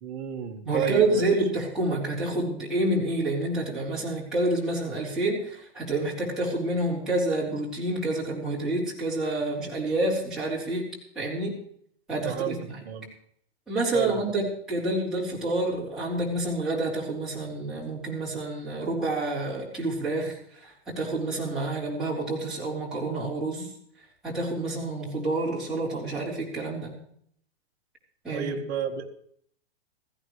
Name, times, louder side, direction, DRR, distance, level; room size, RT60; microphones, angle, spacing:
voice 1, 0.0-1.4 12.3-12.6 12.8-13.1 13.9-14.2 28.3-29.2, right 9 dB, 25° right, 0 dB, 1.6 m, -31 dB
voice 2, 0.6-10.9 11.1-11.5 12.1-12.6 13.7-23.7 24.2-27.0 28.2-28.5, right 2 dB, ahead, -9 dB, 4.4 m, -28 dB
17.0 x 15.0 x 3.2 m, 0.64 s
hypercardioid pair, 170°, 32 cm